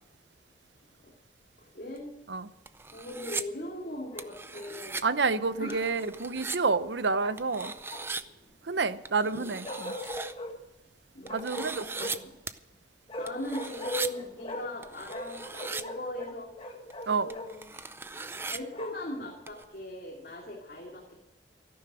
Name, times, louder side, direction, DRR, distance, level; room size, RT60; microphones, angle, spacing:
voice 1, 1.6-2.1 2.9-5.1 5.6-6.1 9.2-9.6 11.1-12.3 13.2-16.5 17.0-18.0 18.4-21.1, left 1 dB, 55° left, 2.9 m, -39 dB
sound 1, 2.0-2.1 2.7-3.4 4.2-5.0 5.7-6.6 7.4-8.2 9.0-10.3 11.3-12.2 12.5-12.6 13.3-14.1 14.8-15.8 16.9-17.0 17.3-18.6 19.5-19.6, right 4 dB, 15° right, 0.5 m, -38 dB
Bark, 4.1-4.8 7.2-8.3 9.6-10.5 11.2-12.3 13.1-14.8 15.1-17.5 18.1-19.1, left 1 dB, 30° left, 1.7 m, -41 dB
voice 2, 5.0-7.7 8.7-10.0 11.3-12.1 17.1-17.3, right 4 dB, 85° right, 0.8 m, -29 dB
13.5 x 11.5 x 6.2 m
head